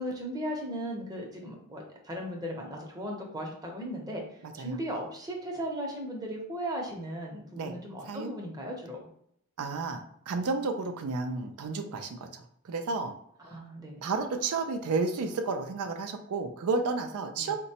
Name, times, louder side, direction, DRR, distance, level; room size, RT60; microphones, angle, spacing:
voice 1, 0.0-4.2 4.6-9.0 13.4-14.0 17.4-17.5, equal, 15° right, 0 dB, 0.7 m, -37 dB
voice 2, 4.4-4.8 7.6-7.7 8.0-8.3 9.6-13.1 14.0-17.6, right 4 dB, 85° right, 6 dB, 0.4 m, -32 dB
3.9 x 2.2 x 2.8 m, 0.71 s
head